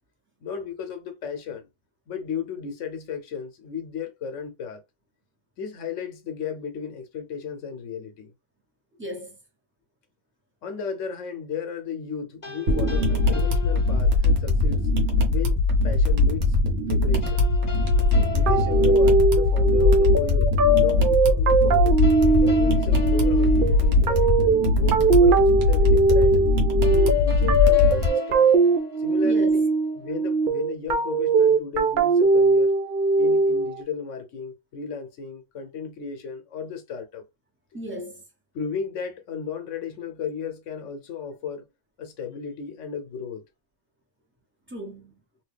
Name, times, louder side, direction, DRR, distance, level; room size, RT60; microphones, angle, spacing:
voice 1, 0.4-1.7 2.1-4.8 5.6-8.3 10.6-14.9 15.3-16.6 16.9-17.5 18.3-22.0 22.4-24.4 24.7-26.4 26.9-28.5 29.0-32.7 33.2-37.2 38.5-41.7 42.0-43.4, left 6 dB, 75° left, 1.0 m, -34 dB
voice 2, 9.0-9.4 18.1-18.4 29.2-29.6 37.7-38.2 44.7-45.2, equal, 10° right, 0.9 m, -36 dB
sound 1, 12.4-14.6 17.2-19.7 22.0-24.5 26.8-29.6, left 3 dB, 40° left, 0.8 m, -38 dB
sound 2, 12.7-28.1, left 2 dB, 85° right, 1.3 m, -21 dB
sound 3, 18.5-33.8, right 3 dB, 60° right, 0.5 m, -20 dB
2.8 x 2.7 x 3.3 m
omnidirectional pair, 1.3 m